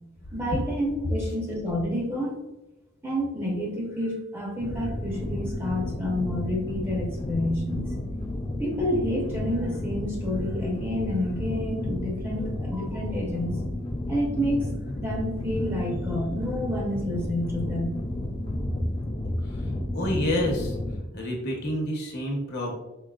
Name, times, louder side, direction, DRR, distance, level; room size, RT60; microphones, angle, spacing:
voice 1, 0.3-2.4 3.0-7.9 8.6-13.6 14.1-14.7 15.0-17.9, left 1 dB, 10° right, -2 dB, 0.8 m, -29 dB
sound 1, 4.6-21.0, left 1 dB, 25° left, 0.3 m, -32 dB
voice 2, 19.9-20.7 21.1-22.7, left 1 dB, 55° left, 0 dB, 0.9 m, -28 dB
4.7 x 2.8 x 2.3 m, 0.98 s
head